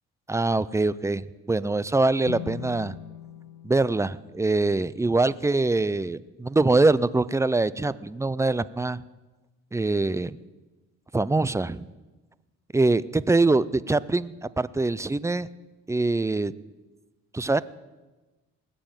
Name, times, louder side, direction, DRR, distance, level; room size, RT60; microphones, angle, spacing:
voice 1, 0.3-2.9 3.6-9.0 9.7-10.4 11.1-11.8 12.7-15.5 15.9-16.5 17.3-17.6, right 2 dB, 10° right, 18 dB, 0.5 m, -24 dB
sound 1, 2.2-5.5, left 11 dB, 80° left, 1.0 m, -42 dB
19.5 x 7.8 x 8.9 m, 1.2 s
cardioid pair, 90°, 30 cm